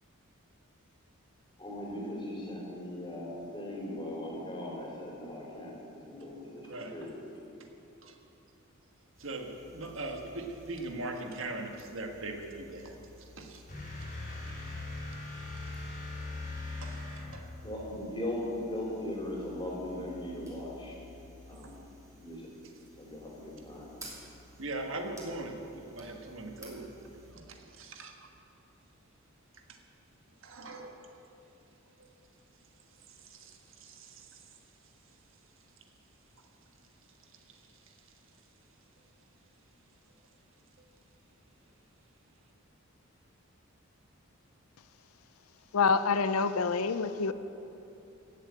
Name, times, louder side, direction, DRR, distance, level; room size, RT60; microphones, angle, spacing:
voice 1, 1.6-7.1 17.6-21.0 21.5-21.8 22.2-22.5 23.0-23.9 24.2-24.3, left 1 dB, 25° left, -3 dB, 3.4 m, -39 dB
voice 2, 6.6-7.0 8.0-8.2 9.2-13.6 16.8-17.5 24.6-26.9 27.3-28.3 29.7-29.8 30.4-31.0 32.0-32.1 33.1-34.4 37.5-37.6 37.9-38.0, right 2 dB, 60° right, 3 dB, 1.5 m, -41 dB
sound 1, 9.1-27.3, left 1 dB, 15° right, 2.7 m, -55 dB
sound 2, 13.7-17.6, left 2 dB, 40° left, 3.5 m, -40 dB
voice 3, 45.7-47.3, left 5 dB, 85° left, 12 dB, 0.6 m, -27 dB
15.5 x 7.6 x 8.7 m, 2.9 s
head